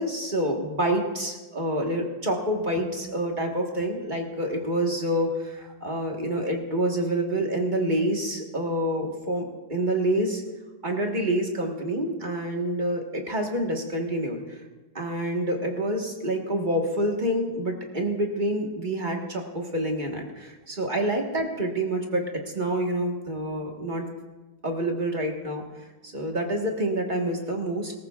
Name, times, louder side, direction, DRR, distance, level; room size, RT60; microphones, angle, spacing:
voice 1, 0.0-10.4 10.8-14.6 14.9-24.1 24.6-25.6 26.0-27.9, right 1 dB, 30° right, 1 dB, 1.4 m, -27 dB
22.5 x 14.5 x 2.4 m, 1.2 s
omnidirectional pair, 1.9 m